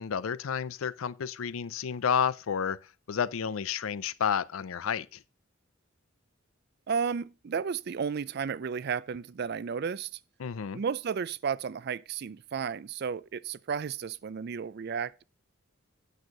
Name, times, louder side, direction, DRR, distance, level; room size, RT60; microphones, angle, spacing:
voice 1, 0.0-2.8 3.1-5.2 10.4-10.8, left 7 dB, 80° left, 0.5 m, -31 dB
voice 2, 6.9-10.2 10.7-15.2, right 6 dB, 50° right, 0.4 m, -33 dB
8.9 x 6.3 x 5.2 m
head